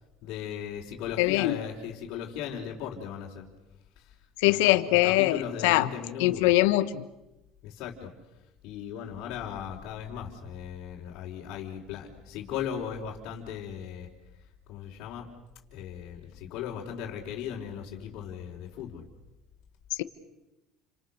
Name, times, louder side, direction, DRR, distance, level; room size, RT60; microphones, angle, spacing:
voice 1, 0.2-3.4 4.0-4.1 4.4-6.6 7.6-8.1 8.6-14.1 14.7-15.2 15.7-19.0, left 8 dB, 65° left, -5 dB, 4.4 m, -37 dB
voice 2, 1.2-1.6 4.4-5.9 6.2-7.0, left 18 dB, 90° left, 12 dB, 1.3 m, -22 dB
29.5 x 26.5 x 6.7 m, 0.96 s
supercardioid pair, 110°, 0 cm